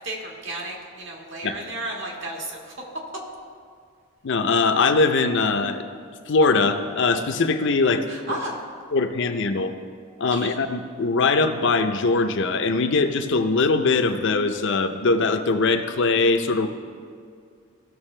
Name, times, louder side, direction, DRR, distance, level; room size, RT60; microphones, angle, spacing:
voice 1, 0.0-2.7 8.1-8.6 10.3-10.5, right 1 dB, 60° right, -1 dB, 1.8 m, -33 dB
voice 2, 4.2-5.8 6.3-8.0 8.9-9.7 10.2-16.7, left 3 dB, 60° left, 8 dB, 0.6 m, -21 dB
16.0 x 6.7 x 3.3 m, 2.2 s
head